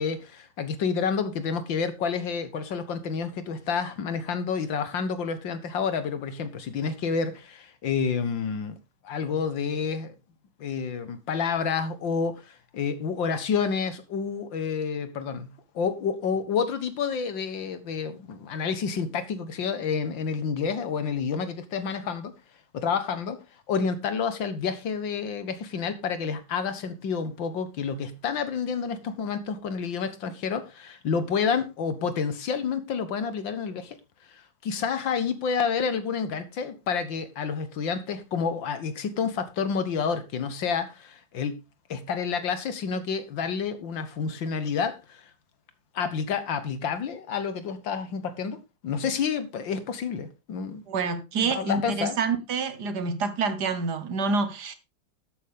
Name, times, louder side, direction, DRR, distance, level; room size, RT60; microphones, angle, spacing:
voice 1, 0.0-8.8 9.0-10.1 10.6-22.3 22.7-34.0 34.3-41.6 41.9-45.3 45.9-50.8 51.5-52.2, left 6 dB, 85° left, 2.1 m, -29 dB
voice 2, 50.9-54.7, right 4 dB, 65° right, 1.8 m, -27 dB
12.5 x 8.5 x 3.6 m
omnidirectional pair, 2.0 m